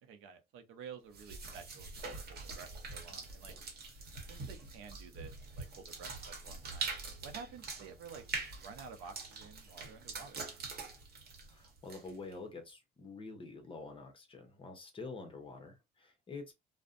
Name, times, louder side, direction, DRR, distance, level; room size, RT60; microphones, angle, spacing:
voice 1, 0.0-3.5 4.3-6.9 7.2-8.2 8.6-10.4, right 6 dB, 85° right, 0.6 m, -51 dB
sound 1, 1.1-12.3, right 4 dB, 50° right, 1.0 m, -44 dB
voice 2, 11.5-16.5, left 3 dB, 25° left, 0.8 m, -47 dB
2.5 x 2.1 x 2.4 m
cardioid pair, 115°, 21 cm